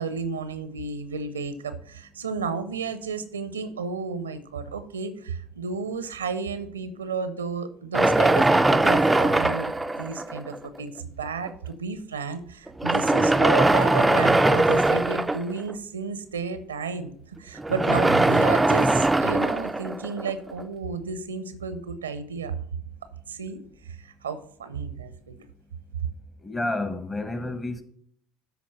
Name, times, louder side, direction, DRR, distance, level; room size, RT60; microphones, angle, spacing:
voice 1, 0.0-22.6 23.3-23.6 23.8-25.4, right 5 dB, 80° right, 0.7 m, -32 dB
sound 1, 7.9-10.7 11.5-11.6 12.7-15.7 17.6-20.6, right 2 dB, 10° right, 0.5 m, -21 dB
voice 2, 26.4-27.8, left 2 dB, 20° left, 1.3 m, -30 dB
13.0 x 4.5 x 4.3 m
figure-of-eight pair, 60°, 0 cm